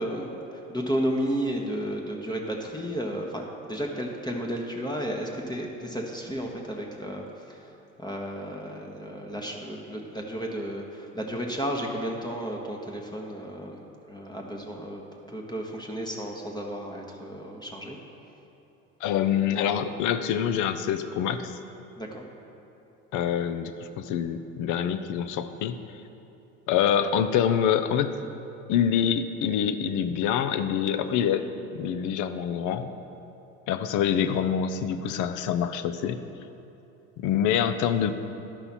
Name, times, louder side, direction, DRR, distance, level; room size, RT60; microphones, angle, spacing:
voice 1, 0.0-18.0 22.0-22.2, equal, 10° left, 0 dB, 1.0 m, -33 dB
voice 2, 19.0-21.6 23.1-25.8 26.7-28.1 28.7-31.4 31.7-32.9 33.7-36.2 37.2-38.1, left 8 dB, 50° left, 10 dB, 0.6 m, -26 dB
11.5 x 5.5 x 4.2 m, 3.0 s
hypercardioid pair, 70°, 40 cm